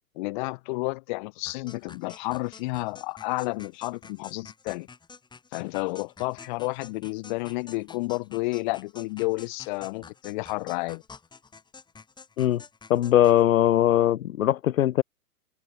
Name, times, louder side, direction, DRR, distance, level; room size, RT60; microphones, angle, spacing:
voice 1, 0.2-4.9 5.5-11.0, left 25 dB, 30° left, 1.0 m, -31 dB
sound 1, 1.5-13.4, left 5 dB, 10° left, 4.6 m, -49 dB
voice 2, 12.9-15.0, left 12 dB, 60° left, 0.7 m, -20 dB
hypercardioid pair, 125°, 48 cm